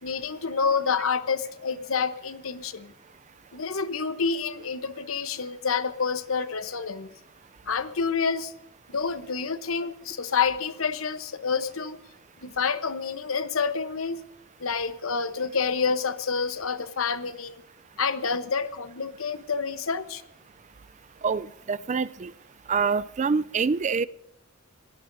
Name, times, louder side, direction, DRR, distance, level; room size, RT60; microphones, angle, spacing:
voice 1, 0.0-2.9 3.5-7.1 7.7-8.5 8.9-12.0 12.4-14.2 14.6-17.6 18.0-20.2, left 5 dB, 75° left, 11 dB, 1.0 m, -28 dB
voice 2, 21.2-22.3 22.7-24.1, right 5 dB, 35° right, 17 dB, 0.4 m, -26 dB
25.5 x 17.0 x 2.7 m, 0.87 s
head